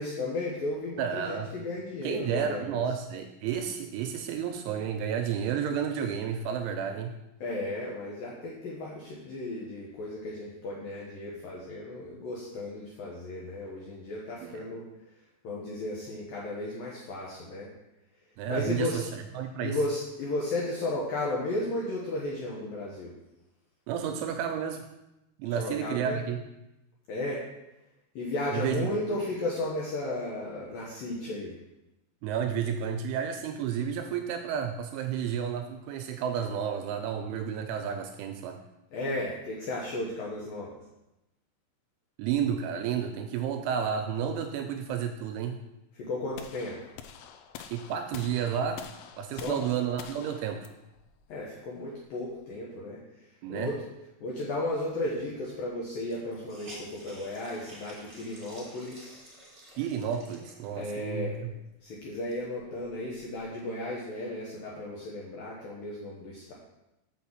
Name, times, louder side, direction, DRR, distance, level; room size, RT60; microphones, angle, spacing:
voice 1, 0.0-2.8 7.4-14.9 15.4-17.7 18.5-19.0 19.6-23.2 25.5-26.3 27.1-27.4 28.2-31.6 38.9-40.8 45.9-46.8 49.3-49.6 51.3-53.8 54.2-59.2 60.7-61.4 61.8-66.5, left 2 dB, 75° left, -4 dB, 2.1 m, -34 dB
voice 2, 1.0-1.5 2.0-7.1 14.4-14.6 18.4-19.8 23.9-24.9 25.4-26.4 28.5-28.9 32.2-38.6 42.2-45.6 47.7-48.9 49.2-50.7 53.4-53.7 59.8-61.5, right 8 dB, 85° right, 6 dB, 2.8 m, -31 dB
sound 1, 46.4-52.4, left 8 dB, 90° left, 2.6 m, -47 dB
Hiss, 55.2-55.3 55.5-55.6 56.0-61.1 61.6-61.7 62.1-63.5, right 1 dB, 20° right, 2.0 m, -51 dB
6.3 x 6.0 x 7.2 m, 0.92 s
omnidirectional pair, 5.8 m